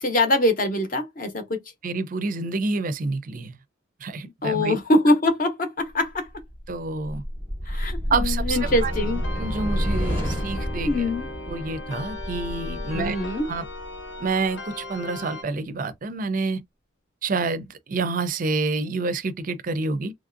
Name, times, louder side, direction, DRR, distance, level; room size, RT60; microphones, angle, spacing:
voice 1, 0.0-1.6 4.4-6.3 7.7-9.2 10.9-11.3 12.9-13.5, left 1 dB, 40° left, 0.7 m, -23 dB
voice 2, 1.8-3.5 4.0-4.8 6.7-7.2 7.7-7.8 8.1-8.9 9.4-11.1 11.5-13.2 13.5-13.6 14.2-16.6 17.2-20.1, right 3 dB, 40° right, 0.4 m, -28 dB
sound 1, 6.1-14.5, equal, 10° left, 0.8 m, -30 dB
sound 2, 8.5-15.4, left 2 dB, 70° left, 0.8 m, -37 dB
3.1 x 2.5 x 2.5 m
head